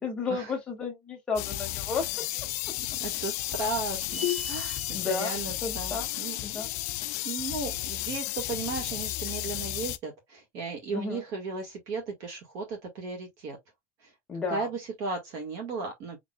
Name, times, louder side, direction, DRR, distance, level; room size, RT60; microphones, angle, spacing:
voice 1, 0.0-2.0 4.9-5.3 5.6-6.1 6.4-6.7 10.9-11.2 14.3-14.6, left 4 dB, 15° left, 1.2 m, -32 dB
sound 1, 1.4-10.0, left 16 dB, 40° left, 0.3 m, -33 dB
voice 2, 2.8-6.4 7.2-13.6 14.0-14.1 14.5-16.2, right 4 dB, 40° right, 1.5 m, -35 dB
sound 2, 4.1-5.0, left 8 dB, 80° left, 0.8 m, -32 dB
4.2 x 3.3 x 2.2 m
cardioid pair, 180°, 7 cm